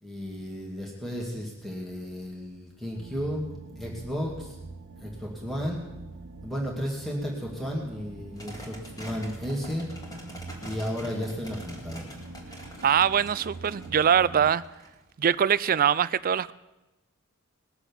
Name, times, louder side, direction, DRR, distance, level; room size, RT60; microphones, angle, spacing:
voice 1, 0.0-4.6 5.0-5.8 6.4-9.9 10.6-12.1, equal, ahead, 2.3 m, -33 dB
sound 1, 2.9-14.5, right 3 dB, 75° right, 0.9 m, -44 dB
sound 2, 8.4-15.3, equal, 15° left, 2.6 m, -45 dB
voice 2, 12.8-14.6 15.2-16.5, right 8 dB, 40° right, 0.4 m, -23 dB
20.0 x 7.2 x 7.0 m
head